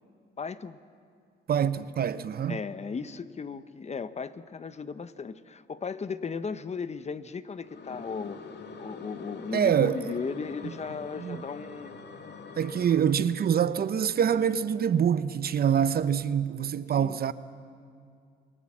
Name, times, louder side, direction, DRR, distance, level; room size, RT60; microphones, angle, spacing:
voice 1, 0.4-0.8 2.5-8.4 8.8-12.0 17.0-17.2, left 5 dB, 35° left, 0.9 m, -36 dB
voice 2, 1.5-2.6 9.5-10.2 11.2-11.4 12.6-17.3, right 8 dB, 50° right, 0.8 m, -25 dB
sound 1, 7.6-13.0, left 4 dB, 60° left, 2.1 m, -44 dB
28.5 x 19.0 x 7.4 m
cardioid pair, 90°, 20 cm